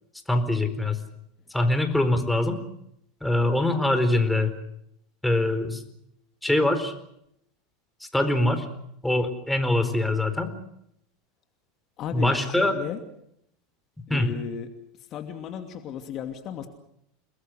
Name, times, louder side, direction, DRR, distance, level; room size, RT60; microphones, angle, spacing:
voice 1, 0.3-1.0 1.5-2.6 3.2-4.5 5.2-5.8 6.4-6.9 8.1-8.7 9.0-10.5 12.1-12.7 14.1-14.3, left 1 dB, 5° left, 8 dB, 4.4 m, -23 dB
voice 2, 12.0-13.0 14.1-14.7 15.1-16.7, left 9 dB, 45° left, 6 dB, 2.7 m, -34 dB
30.0 x 21.0 x 6.5 m, 0.75 s
hypercardioid pair, 85°, 0 cm